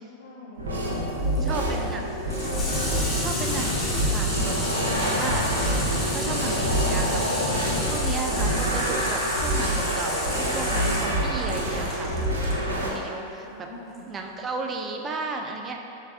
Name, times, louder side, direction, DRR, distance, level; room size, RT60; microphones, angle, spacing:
voice 1, 0.2-0.6 0.9-2.1 13.4-14.0, left 2 dB, 65° left, -5 dB, 0.7 m, -40 dB
sound 1, 0.6-12.9, right 1 dB, 75° right, 0.5 m, -26 dB
Water tap faucet / Sink (filling or washing), 0.7-12.6 13.9-14.0, left 1 dB, 20° left, 0.7 m, -34 dB
voice 2, 1.5-2.1 3.2-5.5 6.1-7.2 7.8-13.5 14.1-15.8, right 3 dB, 25° right, 2 dB, 0.3 m, -34 dB
sound 2, 2.7-7.9, left 1 dB, 5° right, 1.3 m, -31 dB
4.9 x 3.3 x 2.3 m, 2.8 s
figure-of-eight pair, 90°, 0 cm